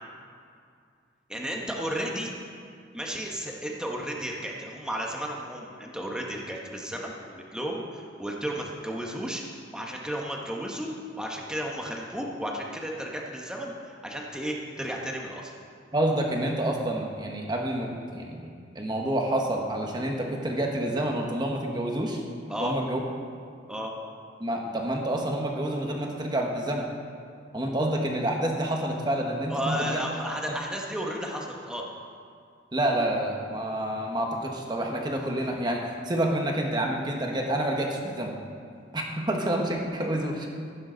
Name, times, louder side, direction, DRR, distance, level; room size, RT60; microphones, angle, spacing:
voice 1, 1.3-2.3 2.9-9.4 9.7-10.9 11.2-15.5 22.5-22.7 23.7-23.9 29.5-31.8, equal, 5° right, -1 dB, 1.2 m, -33 dB
voice 2, 15.9-18.4 18.7-22.2 22.6-23.0 24.4-26.9 27.5-30.0 30.5-30.6 32.7-38.3 38.9-40.5, right 1 dB, 25° right, 1 dB, 1.4 m, -28 dB
14.5 x 11.5 x 4.0 m, 2.3 s
head